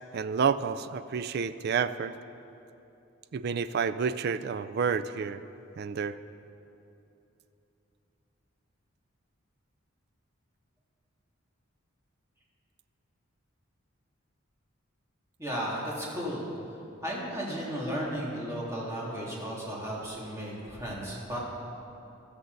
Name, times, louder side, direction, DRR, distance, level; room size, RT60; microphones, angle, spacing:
voice 1, 0.1-2.1 3.3-5.4 5.8-6.1, right 6 dB, 50° right, 13 dB, 0.4 m, -29 dB
voice 2, 15.4-16.4 17.0-21.4, equal, 15° right, -5 dB, 2.5 m, -34 dB
16.0 x 13.0 x 4.0 m, 2.9 s
head